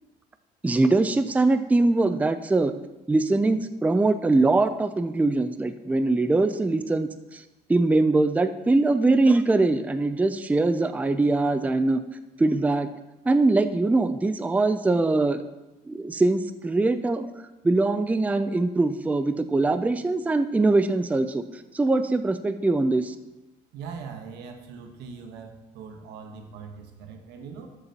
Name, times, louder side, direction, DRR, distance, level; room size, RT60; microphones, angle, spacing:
voice 1, 0.6-2.7 3.1-7.4 7.7-12.0 12.4-12.9 13.3-15.4 15.9-17.3 17.6-21.4 21.7-23.1, right 2 dB, 10° right, 10 dB, 0.4 m, -22 dB
voice 2, 23.7-27.7, right 5 dB, 90° right, 5 dB, 1.2 m, -41 dB
13.0 x 6.9 x 2.9 m, 1.0 s
cardioid pair, 110°, 17 cm